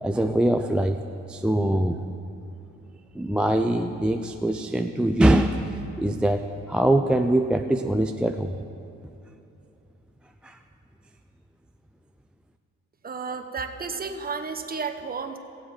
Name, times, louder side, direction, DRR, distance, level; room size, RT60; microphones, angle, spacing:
voice 1, 0.0-1.0 1.3-2.0 3.2-5.6 6.0-8.6 10.4-10.6, right 1 dB, 5° right, 5 dB, 0.4 m, -23 dB
voice 2, 13.0-15.4, right 5 dB, 30° right, 6 dB, 1.0 m, -32 dB
17.5 x 7.7 x 4.3 m, 2.7 s
cardioid pair, 90°, 30 cm